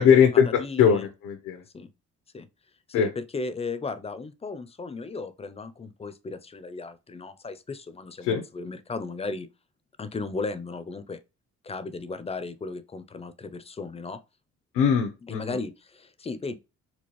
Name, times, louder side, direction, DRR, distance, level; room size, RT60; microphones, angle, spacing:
voice 1, 0.0-1.6 2.9-3.1 8.2-8.4 14.7-15.6, left 7 dB, 90° left, 0.8 m, -21 dB
voice 2, 0.6-1.1 1.7-1.9 2.3-2.5 2.9-9.5 10.0-11.2 11.6-14.2 15.2-16.6, left 3 dB, 20° left, 0.5 m, -35 dB
4.4 x 2.3 x 3.0 m
cardioid pair, 90°, 30 cm